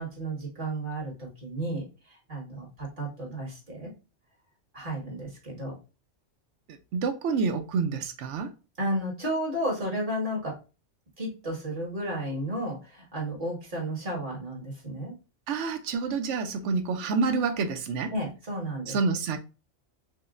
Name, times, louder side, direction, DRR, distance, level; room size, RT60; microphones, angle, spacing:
voice 1, 0.0-3.9 4.7-5.8 8.8-10.6 11.2-15.1 18.1-19.0, right 1 dB, 45° right, 1.7 m, -33 dB
voice 2, 6.9-8.5 15.5-18.1 18.9-19.4, right 4 dB, 75° right, 0.9 m, -28 dB
5.6 x 2.1 x 2.4 m
omnidirectional pair, 1.2 m